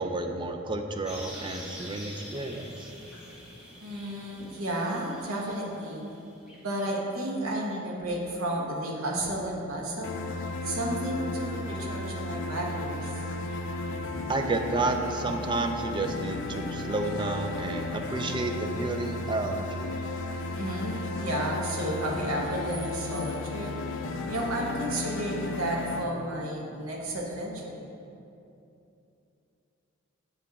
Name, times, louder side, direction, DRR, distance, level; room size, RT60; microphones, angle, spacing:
voice 1, 0.0-2.9 14.3-19.9, right 2 dB, 25° right, 4 dB, 0.4 m, -31 dB
sound 1, 1.0-7.2, equal, 5° right, 1.4 m, -46 dB
voice 2, 3.8-6.0 6.5-10.2 10.6-13.1 20.5-23.7 24.3-27.8, right 1 dB, 85° right, -1 dB, 1.1 m, -32 dB
sound 2, 10.0-26.0, left 2 dB, 65° left, 0.4 m, -34 dB
8.0 x 4.9 x 3.5 m, 2.8 s
head